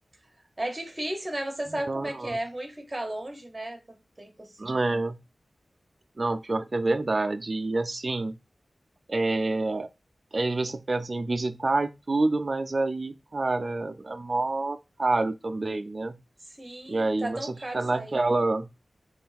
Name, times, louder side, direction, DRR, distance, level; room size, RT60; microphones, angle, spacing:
voice 1, 0.6-4.7 16.5-18.2, right 1 dB, 25° right, 1.4 m, -35 dB
voice 2, 1.9-2.4 4.6-5.2 6.2-8.3 9.1-9.9 10.3-16.1 16.9-18.7, right 2 dB, 45° right, 0.4 m, -27 dB
3.7 x 3.1 x 4.3 m
wide cardioid pair, 80°, 0 cm